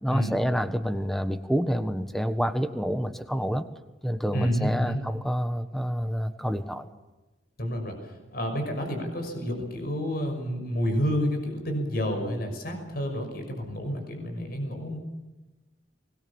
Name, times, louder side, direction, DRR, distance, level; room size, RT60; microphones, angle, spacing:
voice 1, 0.0-3.6 4.0-6.9, equal, ahead, 9 dB, 1.3 m, -28 dB
voice 2, 4.3-5.0 7.6-15.0, equal, 50° left, 4 dB, 6.1 m, -29 dB
24.5 x 21.0 x 7.2 m, 1.1 s
head